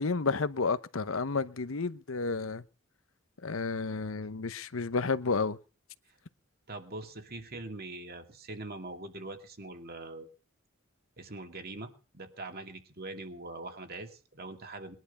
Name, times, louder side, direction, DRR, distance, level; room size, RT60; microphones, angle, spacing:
voice 1, 0.0-2.6 3.4-5.6, left 4 dB, 75° left, 0.9 m, -31 dB
voice 2, 6.7-10.3 11.2-15.0, right 2 dB, 50° right, 2.5 m, -43 dB
21.5 x 11.0 x 5.5 m
head